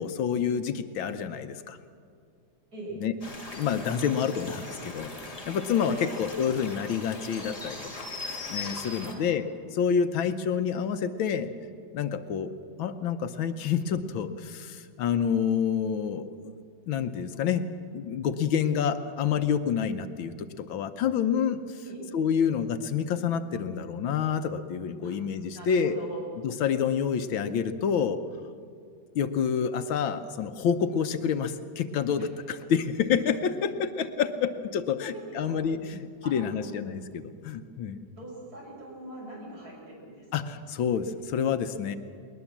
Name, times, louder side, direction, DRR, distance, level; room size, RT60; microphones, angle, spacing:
voice 1, 0.0-1.8 3.0-3.1 3.5-8.1 8.5-9.5 9.7-11.5 11.9-12.5 12.8-16.5 16.9-17.6 17.9-21.8 22.1-26.0 26.4-28.2 29.1-38.1 40.3-42.0, left 7 dB, 80° left, 10 dB, 1.6 m, -28 dB
sound 1, 3.2-9.1, left 2 dB, 15° left, 2.4 m, -40 dB
voice 2, 25.5-26.2 32.2-32.3 34.9-35.6 36.2-36.8 38.2-40.6, right 2 dB, 45° right, -3 dB, 7.0 m, -42 dB
20.5 x 20.5 x 7.3 m, 2.3 s
omnidirectional pair, 2.2 m